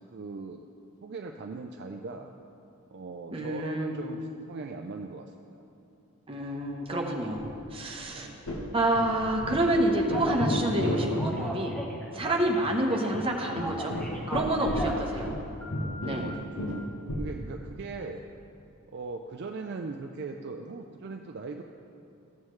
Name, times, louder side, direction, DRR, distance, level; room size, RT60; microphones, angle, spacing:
voice 1, 0.1-0.6 1.0-2.3 2.9-5.6 8.1-8.4 12.2-12.6 15.0-15.2 15.9-18.2 18.9-21.6, right 3 dB, 50° right, 4 dB, 0.4 m, -40 dB
voice 2, 3.3-3.9 6.3-8.3 8.7-11.8 12.1-14.0 14.3-15.3 16.0-16.3, right 1 dB, 25° right, 0 dB, 0.9 m, -28 dB
sound 1, 7.3-7.7 8.0-8.1 8.5-8.7 9.0-9.8 10.1-11.4 11.7-11.8 12.2-12.3 12.6-12.7 13.1-15.5 15.7-17.3, left 1 dB, 85° left, 1.1 m, -33 dB
Telephone, 10.1-10.4 10.9-12.6 12.9-15.0 15.6-16.3, right 1 dB, 5° left, 0.9 m, -38 dB
14.5 x 7.2 x 3.2 m, 2.6 s
head